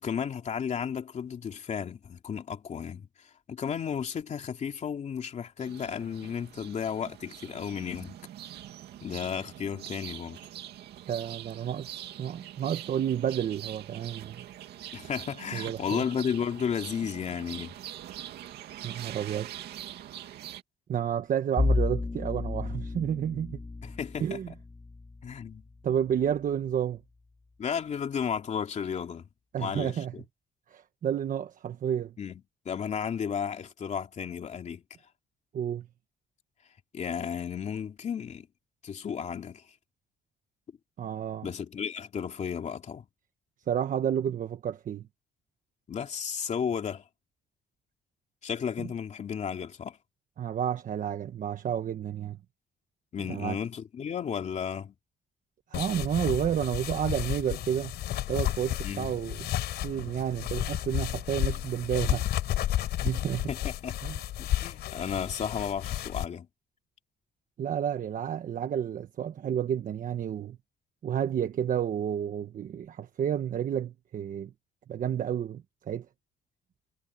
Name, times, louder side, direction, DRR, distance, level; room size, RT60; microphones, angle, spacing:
voice 1, 0.0-3.1 3.5-8.1 9.0-10.4 14.9-17.8 23.8-24.4 25.2-25.6 27.6-29.3 29.6-30.2 32.2-34.8 36.9-38.5 38.8-39.6 41.4-43.1 45.9-47.0 48.4-50.0 53.1-54.9 58.8-59.1 63.5-64.0 64.4-66.5, left 7 dB, 45° left, 2.8 m, -33 dB
sound 1, 5.6-20.6, right 12 dB, 85° right, 2.3 m, -44 dB
voice 2, 11.1-11.9 12.2-14.4 15.5-16.0 18.8-19.5 20.9-23.6 24.2-24.5 25.8-27.0 29.5-30.1 30.7-32.1 35.5-35.9 41.0-41.5 43.7-45.0 50.4-52.4 53.3-53.6 55.7-58.0 58.3-59.5 59.8-62.3 63.0-63.5 64.0-64.2 67.6-70.6 71.0-74.5 74.9-76.1, right 9 dB, 55° right, 1.3 m, -30 dB
Bowed string instrument, 21.6-26.7, left 3 dB, 20° left, 4.3 m, -32 dB
sound 2, 55.7-66.2, left 13 dB, 85° left, 5.9 m, -32 dB
cardioid pair, 130°, 17 cm